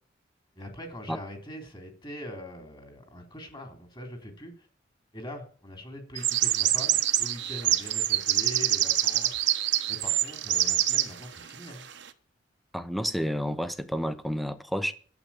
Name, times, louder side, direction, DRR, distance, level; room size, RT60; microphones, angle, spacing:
voice 1, 0.5-4.7 5.1-9.4 9.9-11.9, equal, 25° left, 3.3 m, -42 dB
sound 1, 6.1-11.1, right 13 dB, 65° right, 1.2 m, -25 dB
voice 2, 12.7-14.9, equal, ahead, 0.9 m, -30 dB
12.0 x 8.1 x 8.4 m
head